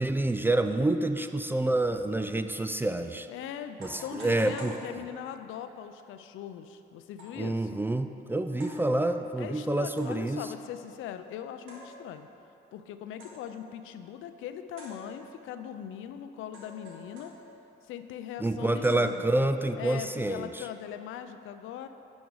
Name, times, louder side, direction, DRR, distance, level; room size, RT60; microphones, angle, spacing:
voice 1, 0.0-3.3 3.8-4.7 7.4-10.5 18.4-20.7, right 2 dB, 10° right, 8 dB, 0.3 m, -28 dB
voice 2, 3.3-7.8 9.4-12.3 12.7-17.3 17.9-19.3 19.8-21.9, left 9 dB, 85° left, 9 dB, 0.5 m, -40 dB
sound 1, 3.8-5.5 7.2-7.5 8.6-8.9 10.0-10.4 11.7-12.3 13.2-13.6 14.8-15.5 16.5-17.7 18.8-19.5, equal, 90° right, 1.7 m, -48 dB
9.4 x 5.3 x 4.7 m, 2.8 s
cardioid pair, 90°, 20 cm